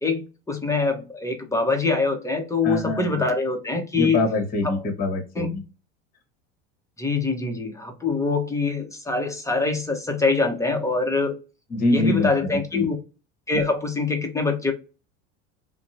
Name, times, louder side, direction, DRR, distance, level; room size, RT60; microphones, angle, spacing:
voice 1, 0.0-4.2 4.6-4.8 5.3-5.6 7.0-11.4 11.9-12.9 13.5-14.7, left 3 dB, 10° left, 0.8 m, -24 dB
voice 2, 2.6-3.2 4.0-5.6 11.7-12.8, left 2 dB, 25° left, 1.1 m, -24 dB
2.7 x 2.1 x 2.6 m
supercardioid pair, 100°, 33 cm